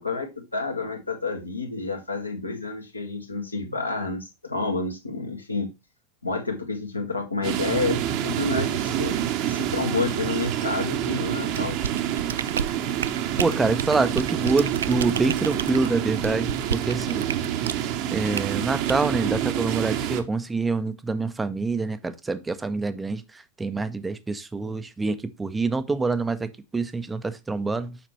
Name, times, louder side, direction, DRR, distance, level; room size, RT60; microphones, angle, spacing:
voice 1, 0.0-5.7 6.2-9.2 9.5-11.8, left 3 dB, 85° left, 1.7 m, -29 dB
sound 1, 7.4-20.2, right 11 dB, 40° right, 0.9 m, -27 dB
sound 2, 11.5-17.9 18.3-18.5 18.9-19.1, right 7 dB, 65° right, 0.3 m, -31 dB
voice 2, 13.4-17.2 18.1-23.2 23.6-28.0, right 3 dB, 10° right, 0.5 m, -26 dB
7.2 x 5.8 x 3.1 m
figure-of-eight pair, 90°, 0 cm